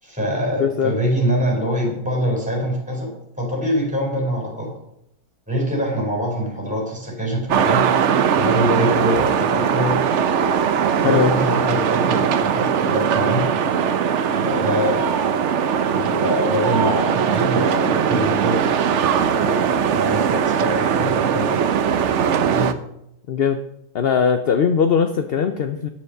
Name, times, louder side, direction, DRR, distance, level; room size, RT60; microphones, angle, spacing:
voice 1, 0.0-4.7 5.5-7.9 8.4-10.0 11.0-13.5 14.3-15.1 15.9-18.8 19.4-21.6 22.5-22.7, equal, 5° right, -1 dB, 4.1 m, -24 dB
voice 2, 0.6-0.9 11.0-11.3 23.3-23.6 23.9-25.9, left 7 dB, 55° left, 8 dB, 0.7 m, -19 dB
sound 1, 7.5-22.7, right 7 dB, 60° right, 0.9 m, -20 dB
10.5 x 7.3 x 6.5 m, 0.80 s
omnidirectional pair, 1.7 m